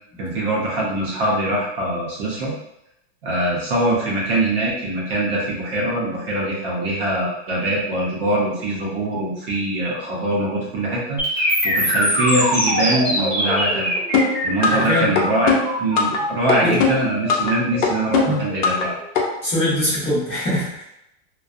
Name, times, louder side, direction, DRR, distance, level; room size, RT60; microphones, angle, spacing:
voice 1, 0.2-2.5 3.2-13.9 14.4-15.5 15.8-19.0, right 1 dB, 45° right, -4 dB, 0.7 m, -23 dB
sound 1, 11.2-19.1, equal, 10° right, 0.4 m, -23 dB
sound 2, 14.1-14.9 15.2-16.2 16.5-17.5 17.8-18.9 19.2-19.3, left 5 dB, 65° left, 0.6 m, -19 dB
voice 2, 14.7-15.2 16.6-16.8 18.2-18.5 19.4-20.8, left 1 dB, 15° left, -12 dB, 0.7 m, -22 dB
2.6 x 2.2 x 2.4 m, 0.81 s
supercardioid pair, 175°, 39 cm